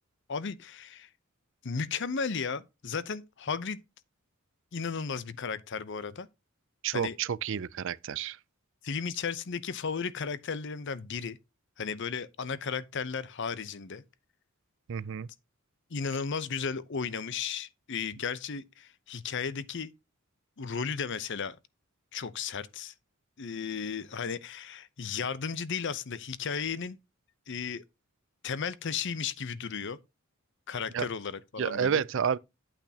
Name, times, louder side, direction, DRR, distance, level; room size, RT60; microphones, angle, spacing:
voice 1, 0.3-1.1 1.6-3.8 4.7-6.3 6.9-7.2 8.8-11.4 11.8-14.0 15.9-19.9 20.6-21.6 22.1-22.9 23.4-27.0 27.5-27.8 28.4-30.0 30.7-32.0, left 6 dB, 60° left, 0.7 m, -34 dB
voice 2, 6.8-8.4 14.9-15.3 30.9-31.1 31.6-32.4, right 7 dB, 60° right, 0.4 m, -30 dB
8.7 x 8.6 x 2.8 m
head